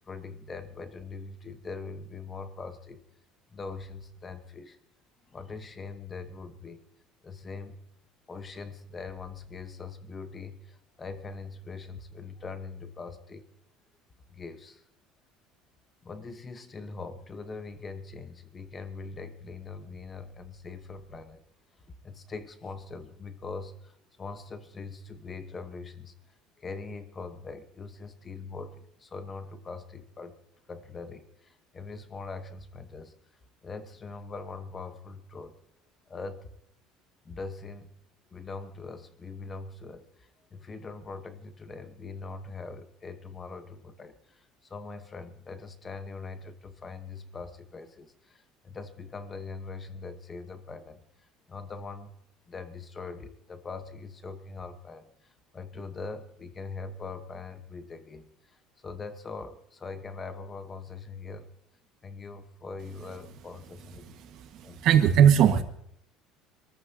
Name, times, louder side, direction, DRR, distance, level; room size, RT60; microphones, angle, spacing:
voice 1, 0.1-3.0 3.5-4.8 5.3-6.8 7.2-7.8 8.3-13.5 14.3-14.8 16.0-21.4 22.0-26.1 26.6-30.4 30.7-33.1 33.6-35.5 36.1-36.5 37.2-37.9 38.3-51.0 51.5-52.1 52.5-58.6 58.8-61.5 62.0-64.3 64.6-64.8, left 4 dB, 20° left, 10 dB, 1.0 m, -42 dB
voice 2, 64.0-65.6, right 9 dB, 45° right, 6 dB, 1.4 m, -21 dB
26.5 x 14.0 x 2.8 m, 0.74 s
cardioid pair, 175°, 0 cm